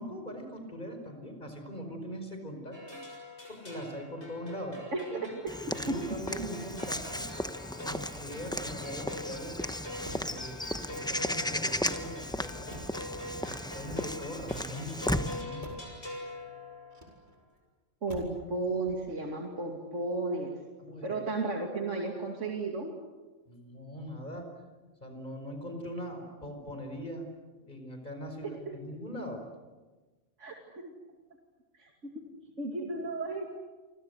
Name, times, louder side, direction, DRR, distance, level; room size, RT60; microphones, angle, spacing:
voice 1, 0.0-3.0 3.5-5.3 5.7-7.3 7.8-9.6 10.1-12.8 13.1-15.8 20.8-21.1 23.5-24.5 25.0-27.3 27.6-29.4, equal, 40° left, 4 dB, 5.2 m, -41 dB
sound 1, 2.7-17.2, left 2 dB, 65° left, 7.3 m, -44 dB
Walk footsteps / Bird vocalization bird call bird song, 5.5-15.4, left 1 dB, 5° left, 0.8 m, -35 dB
Motor vehicle (road), 10.0-10.5 11.1-11.8 12.7-13.2 13.9-14.7 15.6-16.0 16.9-17.5 18.1-18.5 18.8-19.3, right 2 dB, 40° right, 5.3 m, -49 dB
voice 2, 18.0-20.5 21.0-22.9 28.7-28.8 30.4-30.9 31.8-32.2 32.6-33.5, right 2 dB, 90° right, 1 dB, 2.9 m, -34 dB
29.0 x 25.0 x 8.1 m, 1.3 s
omnidirectional pair, 1.2 m